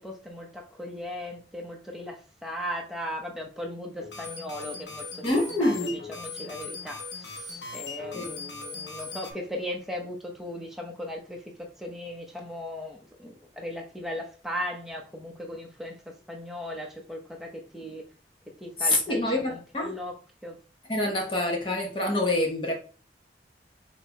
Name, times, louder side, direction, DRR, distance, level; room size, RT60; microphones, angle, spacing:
voice 1, 0.0-18.0 18.6-20.1 20.4-20.6, left 1 dB, ahead, 0 dB, 0.7 m, -38 dB
sound 1, 4.0-9.3, left 4 dB, 85° left, 1.2 m, -39 dB
voice 2, 5.2-6.0 8.1-8.3 18.8-20.0 20.9-22.7, left 1 dB, 30° left, 0 dB, 1.1 m, -26 dB
5.3 x 2.8 x 3.0 m, 0.38 s
head